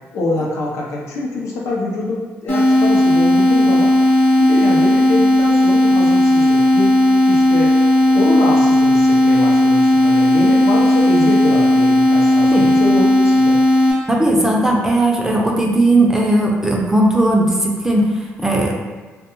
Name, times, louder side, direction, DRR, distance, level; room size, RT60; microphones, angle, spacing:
voice 1, 0.1-3.9 4.4-6.9 7.3-7.8 8.1-13.6, left 2 dB, 75° left, -2 dB, 0.5 m, -24 dB
sound 1, 2.5-13.9, left 1 dB, 30° left, 0.8 m, -14 dB
voice 2, 14.1-18.7, right 1 dB, 10° right, -1 dB, 0.4 m, -16 dB
2.3 x 2.2 x 2.9 m, 1.4 s
cardioid pair, 95°, 5 cm